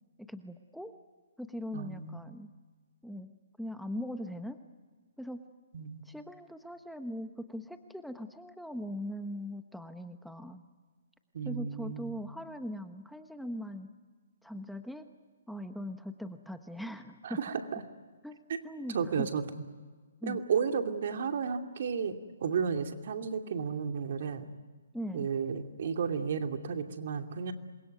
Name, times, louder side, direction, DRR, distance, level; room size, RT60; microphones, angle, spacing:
voice 1, 0.2-1.0 1.4-2.5 3.0-3.3 3.6-4.6 5.2-5.4 6.0-10.6 11.4-13.9 14.4-15.1 15.5-17.4 18.2-19.3 20.2-20.4 24.9-25.3, equal, ahead, 8 dB, 1.1 m, -40 dB
voice 2, 1.7-2.3 5.7-6.0 11.3-12.2 17.2-17.8 18.5-18.6 18.9-19.4 20.2-24.5 25.1-27.5, right 6 dB, 60° right, 6 dB, 2.6 m, -33 dB
27.5 x 22.5 x 9.5 m, 1.4 s
hypercardioid pair, 140°, 0 cm